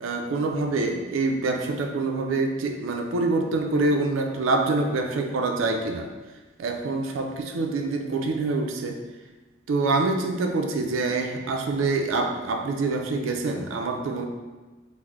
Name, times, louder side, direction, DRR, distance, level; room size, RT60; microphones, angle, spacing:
voice 1, 0.0-6.1 6.6-9.0 9.7-14.3, right 3 dB, 85° right, 4 dB, 0.4 m, -26 dB
3.6 x 2.0 x 3.1 m, 1.2 s
head